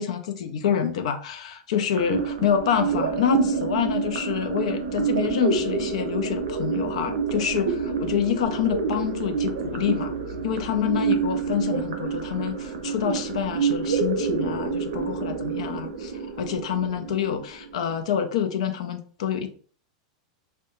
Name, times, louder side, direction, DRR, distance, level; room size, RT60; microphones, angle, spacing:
voice 1, 0.0-10.1 10.4-19.5, left 8 dB, 80° left, 8 dB, 0.4 m, -27 dB
sound 1, 2.0-18.0, right 5 dB, 85° right, 0.5 m, -27 dB
2.3 x 2.1 x 2.9 m, 0.44 s
supercardioid pair, 140°, 3 cm